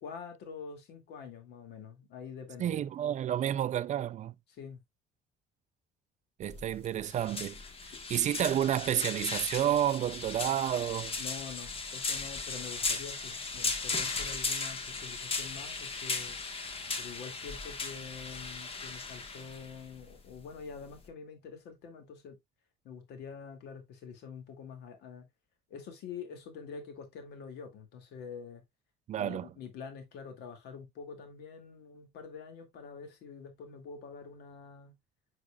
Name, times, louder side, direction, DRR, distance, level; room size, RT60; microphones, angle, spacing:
voice 1, 0.0-2.9 4.5-4.8 7.9-8.0 11.2-16.4 17.0-22.4 22.8-25.3 25.7-28.6 29.1-35.0, left 6 dB, 80° left, 2.3 m, -46 dB
voice 2, 2.6-4.3 6.4-7.6 8.1-11.2 29.1-29.5, right 11 dB, 45° right, 0.4 m, -30 dB
sound 1, 6.4-21.1, left 4 dB, 35° left, 1.4 m, -37 dB
8.8 x 4.9 x 2.3 m
cardioid pair, 110°, 17 cm